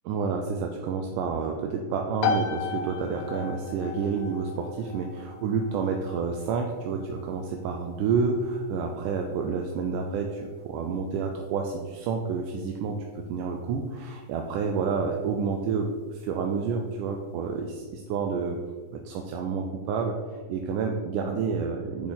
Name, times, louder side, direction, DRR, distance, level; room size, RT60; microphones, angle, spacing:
voice 1, 0.1-18.6 18.9-22.1, right 5 dB, 80° right, 3 dB, 2.1 m, -29 dB
sound 1, 2.2-16.7, left 5 dB, 75° left, 1.7 m, -38 dB
7.6 x 7.2 x 4.0 m, 1.5 s
omnidirectional pair, 3.9 m